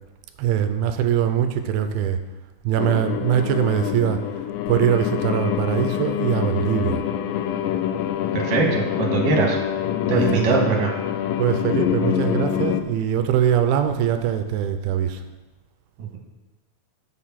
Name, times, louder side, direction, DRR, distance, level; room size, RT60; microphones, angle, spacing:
voice 1, 0.4-2.2 2.6-4.2 4.7-7.0 10.1-10.6 11.4-15.2, right 9 dB, 80° right, 8 dB, 2.4 m, -22 dB
sound 1, 2.8-12.8, left 10 dB, 85° left, 2.0 m, -25 dB
voice 2, 8.3-9.6 10.1-10.9 16.0-16.2, right 5 dB, 65° right, 0 dB, 2.6 m, -22 dB
7.8 x 6.6 x 5.7 m, 1.1 s
omnidirectional pair, 4.6 m